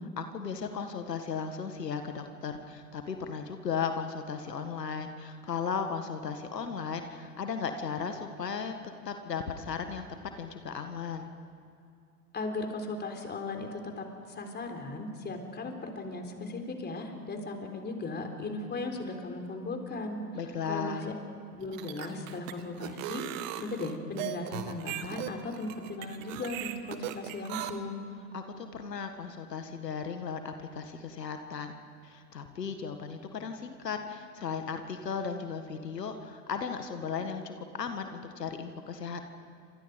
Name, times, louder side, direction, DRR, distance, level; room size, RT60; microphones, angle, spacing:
voice 1, 0.2-10.1 10.4-11.3 20.3-21.1 28.3-31.7 32.0-39.3, left 6 dB, 85° left, 6 dB, 1.8 m, -36 dB
voice 2, 12.3-20.2 20.6-21.1 21.5-23.2 23.6-28.0, left 2 dB, 20° left, 4 dB, 3.9 m, -37 dB
sound 1, 21.6-27.7, right 13 dB, 55° right, 1.8 m, -38 dB
29.0 x 26.5 x 5.3 m, 2.5 s
hypercardioid pair, 95°, 48 cm